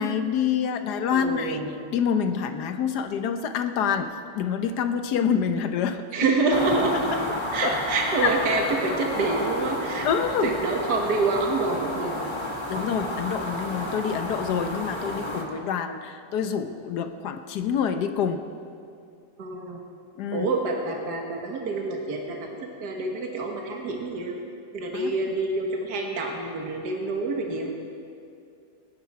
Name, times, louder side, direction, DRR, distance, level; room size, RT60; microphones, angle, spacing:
voice 1, 0.0-6.3 7.6-7.8 8.2-8.3 10.0-10.5 12.7-18.4 20.2-20.5 24.9-25.1, left 7 dB, 70° left, 8 dB, 1.4 m, -27 dB
voice 2, 1.1-1.7 6.1-7.0 7.5-10.1 10.4-12.2 19.4-19.8 20.3-22.5 22.8-24.4 24.7-27.7, right 3 dB, 70° right, 1 dB, 1.9 m, -27 dB
sound 1, 6.5-15.4, left 1 dB, 15° left, 1.6 m, -31 dB
24.5 x 9.9 x 4.7 m, 2.5 s
omnidirectional pair, 1.9 m